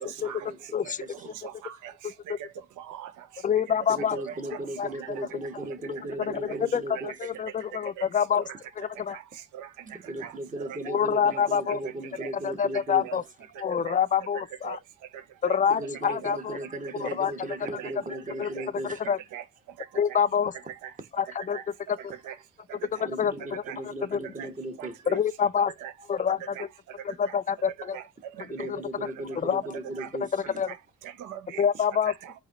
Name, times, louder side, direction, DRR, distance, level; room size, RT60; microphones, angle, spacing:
voice 1, 0.0-1.3 3.9-7.1 9.8-13.2 15.7-19.0 23.0-25.2 28.4-30.6, right 1 dB, 25° right, 1.1 m, -37 dB
voice 2, 1.2-1.9 2.4-2.5 2.8-3.1 4.2-4.6 5.0-5.1 6.5-6.6 6.9-7.0 8.0-8.1 8.3-8.4 9.1-9.2 9.5-9.7 10.2-10.3 10.7-10.8 11.3-11.4 11.7-11.9 12.2-12.3 13.0-13.2 13.8-14.0 14.6-14.8 15.4-15.6 16.2-16.4 17.0-17.1 17.8-18.2 18.5-18.7 19.0-19.4 20.8-20.9 21.5-21.6 22.2-22.3 23.6-23.8 24.4-24.5 24.8-25.2 25.8-25.9 26.5-26.6 27.2-27.3 27.9-28.0 28.4-28.7 30.0-30.1 30.7-30.8 31.0-31.7 32.0-32.3, right 10 dB, 85° right, 0.7 m, -40 dB
voice 3, 3.4-4.2 4.8-4.9 6.1-8.4 8.8-9.2 10.9-11.8 12.4-13.2 13.6-14.8 15.4-16.6 16.9-17.3 18.4-18.5 19.1-19.2 20.0-20.5 21.2-21.6 23.2-23.6 24.1-24.2 25.1-25.7 26.1-26.6 27.1-28.0 28.7-28.8 29.4-29.6 30.3-30.7 31.6-32.1, left 7 dB, 25° left, 0.4 m, -26 dB
4.8 x 2.7 x 3.9 m
cardioid pair, 90°, 30 cm